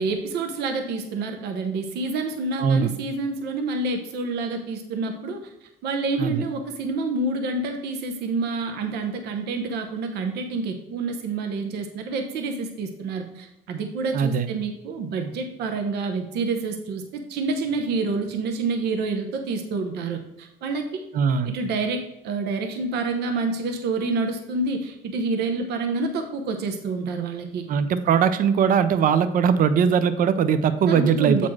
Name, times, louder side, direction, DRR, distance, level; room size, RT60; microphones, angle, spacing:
voice 1, 0.0-21.0 21.4-27.7 30.9-31.5, right 3 dB, 75° right, 5 dB, 0.9 m, -28 dB
voice 2, 2.6-2.9 6.2-6.4 14.1-14.5 21.1-21.5 27.7-31.5, right 7 dB, 55° right, 12 dB, 0.6 m, -20 dB
7.4 x 4.3 x 4.6 m, 0.87 s
cardioid pair, 110°, 17 cm